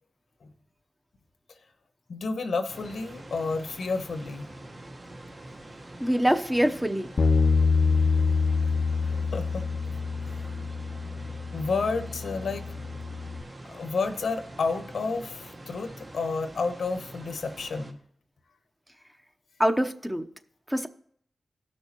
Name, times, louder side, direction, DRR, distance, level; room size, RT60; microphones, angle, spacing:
voice 1, 2.1-4.4 9.0-9.6 10.2-10.5 11.5-12.7 13.7-18.0, left 4 dB, 85° left, 8 dB, 1.0 m, -31 dB
sound 1, 2.7-17.9, right 1 dB, 45° right, 1.3 m, -45 dB
voice 2, 6.0-7.1 19.6-20.2 20.7-20.9, equal, 10° right, 7 dB, 0.8 m, -24 dB
Bass guitar, 7.2-13.4, left 4 dB, 55° left, 0.5 m, -26 dB
17.0 x 6.3 x 3.0 m, 0.63 s
cardioid pair, 60°, 0 cm